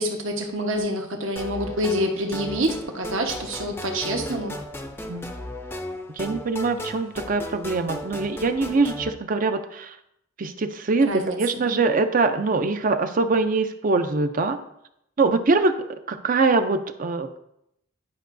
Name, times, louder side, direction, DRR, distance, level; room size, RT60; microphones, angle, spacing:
voice 1, 0.0-4.5 11.1-11.8, equal, 70° right, 3 dB, 1.1 m, -27 dB
sound 1, 1.4-9.1, left 1 dB, 10° left, 0.5 m, -35 dB
voice 2, 6.2-9.9 10.4-14.6 15.2-15.7 16.1-17.4, right 3 dB, 40° right, 9 dB, 0.5 m, -23 dB
10.5 x 5.4 x 2.6 m, 0.78 s
head